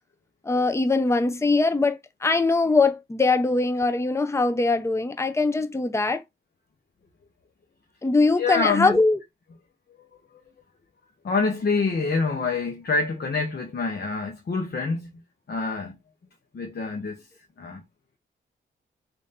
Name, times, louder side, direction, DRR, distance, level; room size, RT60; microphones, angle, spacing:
voice 1, 0.5-6.2 8.0-9.2, left 3 dB, 15° left, 0.6 m, -22 dB
voice 2, 8.4-9.0 10.0-10.1 10.3-10.4 11.2-15.2 15.5-16.0 16.5-17.3 17.6-17.8, left 4 dB, 50° left, 0.9 m, -26 dB
3.2 x 2.6 x 4.1 m
cardioid pair, 55°, 21 cm